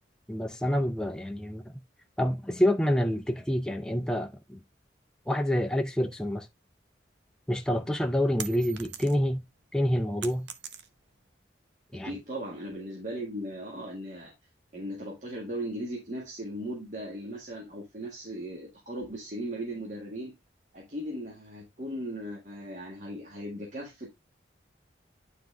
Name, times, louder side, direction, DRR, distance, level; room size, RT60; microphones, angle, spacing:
voice 1, 0.3-1.7 2.2-4.6 5.3-6.5 7.5-9.4 9.7-10.5 11.9-12.1, equal, 5° left, 0.5 m, -27 dB
sound 1, 7.8-9.4 9.8-11.2, right 8 dB, 80° right, 0.9 m, -42 dB
voice 2, 11.9-14.3 14.7-20.3 20.7-24.2, right 1 dB, 40° right, 1.7 m, -38 dB
9.3 x 3.8 x 3.4 m
head